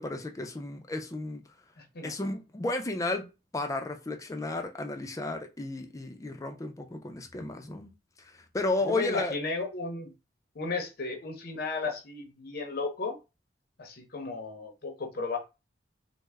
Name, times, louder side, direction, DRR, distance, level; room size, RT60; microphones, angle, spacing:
voice 1, 0.0-1.4 2.0-3.2 3.5-7.9 8.2-9.4, left 2 dB, 20° left, 0.4 m, -33 dB
voice 2, 1.8-2.1 8.8-10.1 10.6-13.2 13.8-15.4, left 3 dB, 55° left, 0.6 m, -34 dB
3.1 x 2.1 x 3.4 m
head